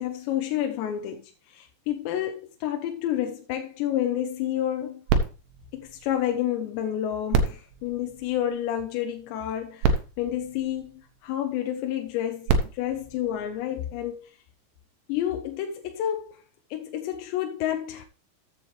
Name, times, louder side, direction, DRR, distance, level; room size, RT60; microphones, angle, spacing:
voice 1, 0.0-5.1 5.7-14.3 15.1-16.4 16.7-18.1, left 11 dB, 80° left, 2.9 m, -30 dB
sound 1, 5.1-6.7 7.3-8.9 9.5-9.6 9.8-11.4 12.2-14.0 14.8-14.9, right 4 dB, 75° right, 2.9 m, -29 dB
13.5 x 8.0 x 3.2 m
omnidirectional pair, 5.1 m